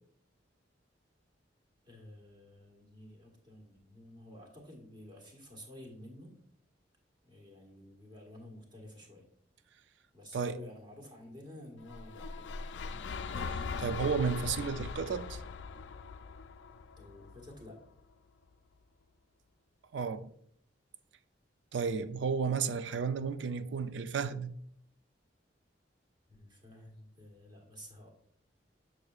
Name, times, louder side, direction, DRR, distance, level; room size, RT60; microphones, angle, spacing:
voice 1, 1.9-6.3 7.2-9.3 10.1-13.0 17.0-17.8 26.3-28.1, left 1 dB, 25° right, 1.4 m, -51 dB
sound 1, 11.8-18.0, left 4 dB, 75° left, 0.4 m, -41 dB
voice 2, 13.4-15.4 19.9-20.3 21.7-24.5, right 5 dB, 75° right, 0.4 m, -33 dB
6.6 x 6.3 x 2.4 m
head